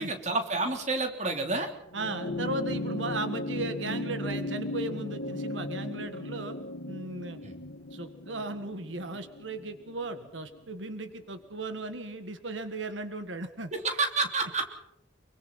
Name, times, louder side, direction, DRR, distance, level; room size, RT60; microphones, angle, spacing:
voice 1, 0.0-1.7 7.4-7.6 13.7-14.7, right 3 dB, 40° right, 4 dB, 3.6 m, -29 dB
sound 1, 1.9-10.6 11.8-11.9, left 1 dB, 90° left, 1.9 m, -36 dB
voice 2, 1.9-6.6 6.9-7.4 7.9-13.7, right 2 dB, 90° right, 9 dB, 1.8 m, -36 dB
27.0 x 24.5 x 4.3 m, 0.79 s
head